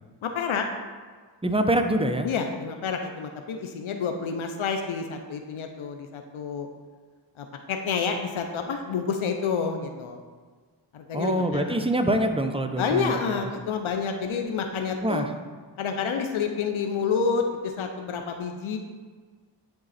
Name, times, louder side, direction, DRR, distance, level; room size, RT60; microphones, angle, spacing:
voice 1, 0.2-0.7 2.2-6.7 7.4-10.2 10.9-11.8 12.8-15.2 15.8-18.8, left 5 dB, 80° left, 5 dB, 0.7 m, -29 dB
voice 2, 1.4-2.3 11.1-13.5 15.0-15.3, right 1 dB, 10° right, 6 dB, 0.7 m, -25 dB
10.5 x 3.8 x 4.2 m, 1.5 s
cardioid pair, 55°, 49 cm